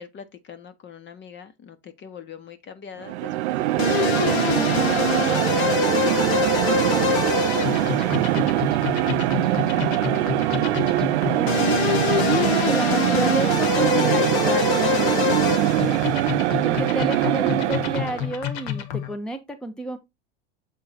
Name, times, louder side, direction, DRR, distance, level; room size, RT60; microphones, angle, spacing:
voice 1, 0.0-4.5 5.1-6.8 7.5-10.9, left 7 dB, 35° left, 1.3 m, -42 dB
sound 1, 3.0-18.3, right 15 dB, 80° right, 0.5 m, -22 dB
sound 2, 3.8-19.1, left 8 dB, 70° left, 1.3 m, -26 dB
voice 2, 11.3-11.8 12.2-16.0 16.6-20.0, right 1 dB, ahead, 0.9 m, -30 dB
7.6 x 3.8 x 4.2 m
hypercardioid pair, 95°, 33 cm